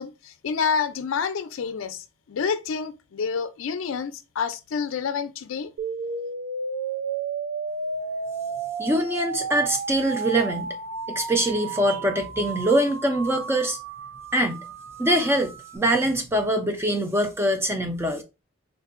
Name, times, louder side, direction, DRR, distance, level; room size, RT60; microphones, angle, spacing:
voice 1, 0.0-5.7, left 6 dB, 75° left, 0.4 m, -28 dB
sound 1, 5.8-15.8, right 4 dB, 80° right, 0.4 m, -33 dB
voice 2, 8.8-10.7 11.1-13.8 14.3-14.6 15.0-18.2, right 1 dB, 10° right, 0.4 m, -23 dB
3.8 x 2.6 x 2.4 m
head